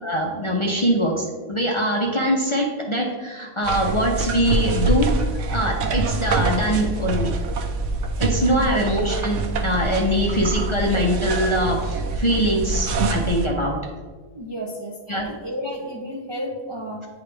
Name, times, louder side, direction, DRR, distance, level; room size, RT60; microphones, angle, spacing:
voice 1, 0.0-5.1 5.5-7.3 8.2-13.8 15.1-15.3, equal, 35° left, -1 dB, 0.6 m, -23 dB
sound 1, 3.6-13.5, right 3 dB, 85° right, 1.0 m, -25 dB
voice 2, 8.5-8.8 14.3-17.1, equal, 35° right, -1 dB, 0.4 m, -32 dB
9.6 x 4.0 x 3.3 m, 1.4 s
omnidirectional pair, 1.3 m